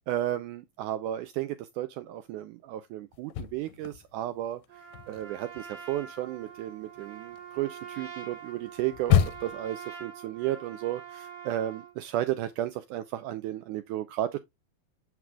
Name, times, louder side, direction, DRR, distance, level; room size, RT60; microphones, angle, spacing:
voice 1, 0.1-4.6 5.1-14.4, right 13 dB, 80° right, 1.9 m, -33 dB
sound 1, 3.1-4.3 4.6-9.7, left 9 dB, 90° left, 2.4 m, -30 dB
Trumpet, 4.7-11.9, right 7 dB, 50° right, 3.5 m, -45 dB
8.0 x 6.0 x 2.3 m
omnidirectional pair, 4.0 m